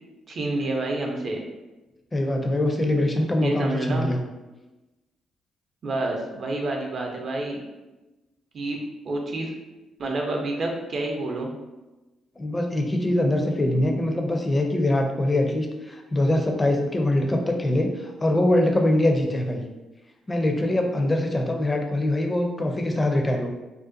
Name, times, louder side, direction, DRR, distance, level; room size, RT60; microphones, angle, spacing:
voice 1, 0.3-1.4 3.4-4.1 5.8-7.6 8.5-9.5 10.0-11.5, right 2 dB, 55° right, 2 dB, 0.5 m, -28 dB
voice 2, 2.1-4.2 12.4-19.6 20.3-23.5, left 1 dB, 25° left, 3 dB, 0.5 m, -23 dB
2.5 x 2.2 x 2.5 m, 1.1 s
supercardioid pair, 60°, 0 cm